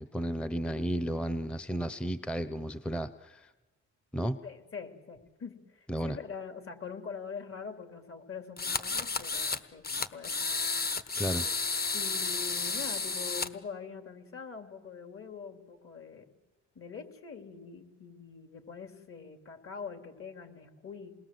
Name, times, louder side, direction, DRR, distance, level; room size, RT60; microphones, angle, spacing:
voice 1, 0.0-3.5 4.1-4.4 5.9-6.2 11.2-11.5, equal, 5° left, 12 dB, 0.8 m, -33 dB
voice 2, 4.4-10.4 11.9-16.3 16.7-21.1, left 6 dB, 45° left, 6 dB, 3.3 m, -44 dB
sound 1, 8.6-9.6 9.8-13.5, left 4 dB, 30° left, 1.3 m, -32 dB
28.0 x 20.5 x 7.7 m, 1.1 s
cardioid pair, 90°, 30 cm